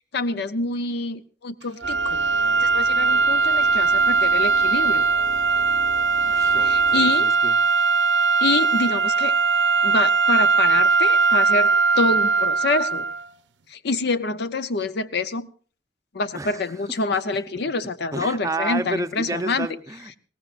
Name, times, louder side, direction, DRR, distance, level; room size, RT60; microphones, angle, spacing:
voice 1, 0.1-5.1 6.6-7.3 8.4-9.3 9.8-13.0 13.7-15.5 16.1-19.7, left 3 dB, 65° left, 13 dB, 0.6 m, -26 dB
sound 1, 1.8-7.3, equal, 20° left, 1.2 m, -43 dB
sound 2, 1.8-13.3, right 4 dB, 85° right, 0.6 m, -20 dB
voice 2, 6.2-7.5 16.3-16.6 17.0-17.1 18.1-20.2, right 2 dB, 20° right, 9 dB, 0.7 m, -31 dB
21.5 x 18.0 x 2.5 m, 0.41 s
head